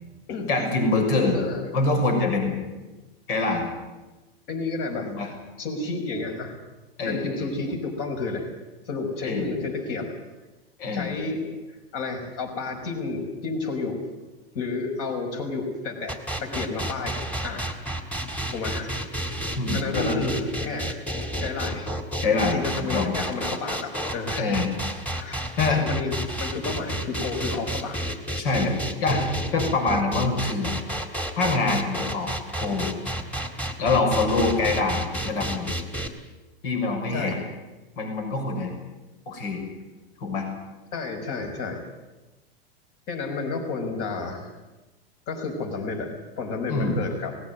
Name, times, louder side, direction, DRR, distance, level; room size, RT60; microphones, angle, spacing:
voice 1, 0.5-1.4 1.7-2.6 3.3-3.7 5.0-5.3 7.0-7.5 9.2-9.5 10.8-11.1 19.6-20.3 22.2-22.6 22.9-23.1 24.0-24.7 25.6-25.8 28.4-29.2 29.5-30.7 31.4-32.3 32.6-32.9 33.8-35.7 36.6-37.3 38.0-38.7 39.3-39.6 40.2-40.5 46.7-47.0, left 3 dB, 65° left, 3 dB, 6.6 m, -25 dB
voice 2, 4.5-5.2 5.6-6.6 7.0-8.5 8.9-10.2 10.9-14.1 14.5-17.7 18.5-18.9 19.7-21.0 21.4-22.0 22.5-24.5 25.1-28.0 34.7-34.8 37.1-37.4 40.9-41.9 43.1-44.5 45.3-47.4, left 3 dB, 50° left, 4 dB, 5.6 m, -31 dB
sound 1, 16.1-36.1, equal, 5° left, 2.0 m, -31 dB
18.5 x 16.5 x 9.6 m, 1.1 s
hypercardioid pair, 125°, 30 cm